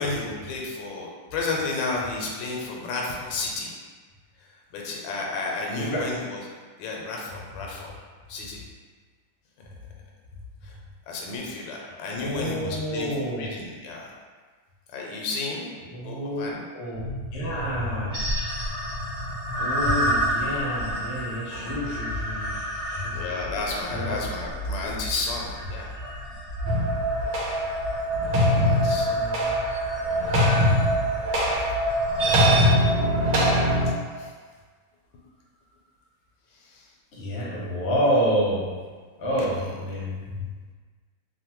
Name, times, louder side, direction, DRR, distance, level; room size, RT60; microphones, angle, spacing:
voice 1, 0.0-3.7 4.7-6.4 6.8-7.9 8.3-8.6 10.6-10.8 11.1-14.1 14.9-15.7 16.0-16.6 21.5-21.8 23.1-25.9 28.5-29.3 30.0-30.4 32.3-32.4 34.1-34.3 36.6-36.9, left 3 dB, 85° left, -1 dB, 1.3 m, -32 dB
voice 2, 5.8-6.1 11.8-13.5 15.9-16.4 16.7-17.0 17.3-18.7 19.6-23.2 23.9-24.1 28.6-29.5 37.1-38.7 39.2-40.4, equal, 55° left, -5 dB, 0.7 m, -29 dB
sound 1, 16.9-32.7, right 1 dB, 55° right, 0.8 m, -31 dB
sound 2, 26.6-33.9, equal, 80° right, 1.2 m, -22 dB
3.2 x 2.1 x 2.9 m, 1.5 s
omnidirectional pair, 1.9 m